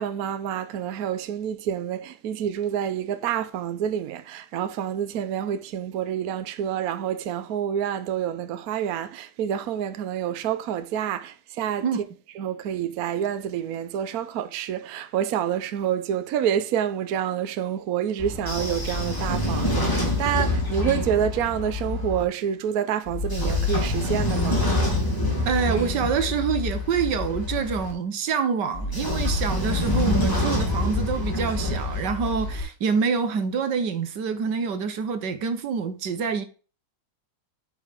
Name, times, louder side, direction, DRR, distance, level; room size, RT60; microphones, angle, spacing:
voice 1, 0.0-11.8 12.4-24.7, right 9 dB, 65° right, 1.2 m, -28 dB
Train / Sliding door, 18.2-22.2 23.1-27.9 28.7-32.6, left 2 dB, 10° left, 3.0 m, -26 dB
voice 2, 25.5-36.4, right 6 dB, 90° right, 1.8 m, -26 dB
9.4 x 5.7 x 3.6 m
omnidirectional pair, 1.8 m